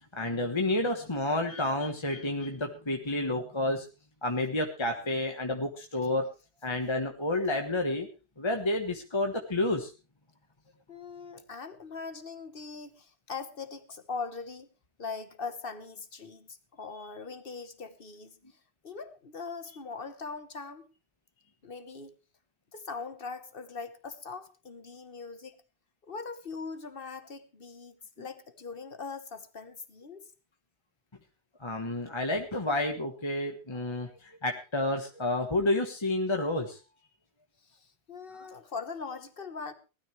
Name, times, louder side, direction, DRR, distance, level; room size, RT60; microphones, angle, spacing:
voice 1, 0.1-3.8 4.2-6.2 6.6-8.1 8.4-9.9 31.6-36.8 38.3-38.5, left 2 dB, 25° left, 3 dB, 1.4 m, -30 dB
voice 2, 10.9-14.7 15.0-18.4 18.8-20.9 21.6-22.2 22.7-25.6 26.0-30.3 37.6-39.7, left 4 dB, 55° left, 10 dB, 1.5 m, -41 dB
19.0 x 13.0 x 3.4 m, 0.32 s
omnidirectional pair, 1.1 m